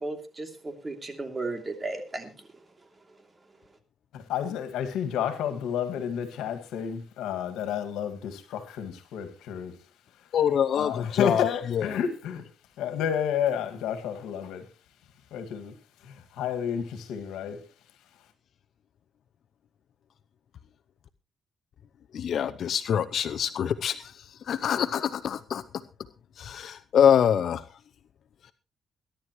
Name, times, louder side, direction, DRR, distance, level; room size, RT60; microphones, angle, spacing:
voice 1, 0.0-2.5, right 2 dB, 25° right, 6 dB, 2.8 m, -35 dB
voice 2, 4.1-9.8 10.8-12.5 12.8-14.7 15.3-15.8 16.0-17.7, left 8 dB, 85° left, 9 dB, 2.0 m, -30 dB
voice 3, 10.3-11.4 11.7-11.9 22.1-25.8 26.4-27.7 28.4-28.5, left 8 dB, 65° left, 12 dB, 0.7 m, -25 dB
21.5 x 11.5 x 3.1 m, 0.29 s
cardioid pair, 90°, 0 cm